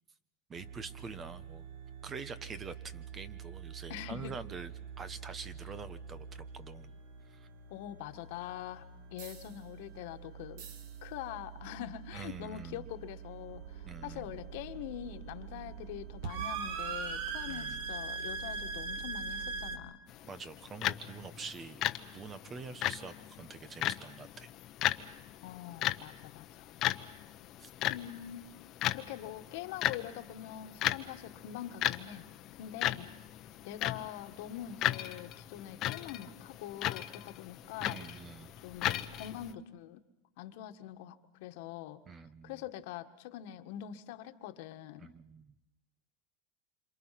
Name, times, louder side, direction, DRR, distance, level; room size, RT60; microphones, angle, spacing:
voice 1, 0.5-1.6 2.0-4.7 5.0-6.9 7.3-7.5 12.1-12.8 13.9-14.4 17.5-17.8 20.2-24.5 27.6-27.7 37.8-38.5 42.1-42.6 45.0-45.5, right 5 dB, 25° right, 13 dB, 1.3 m, -46 dB
sound 1, 0.5-19.8, right 5 dB, 65° right, 2.6 m, -43 dB
voice 2, 3.9-4.3 7.7-10.7 11.0-20.0 25.4-26.7 27.9-28.5 28.9-32.3 32.6-33.1 33.6-38.0 38.6-40.0 40.4-42.0 42.4-45.1, left 12 dB, 65° left, 8 dB, 1.7 m, -44 dB
sound 2, 20.1-39.5, left 14 dB, 40° left, 1.1 m, -37 dB
27.5 x 27.0 x 6.0 m, 0.91 s
supercardioid pair, 125°, 0 cm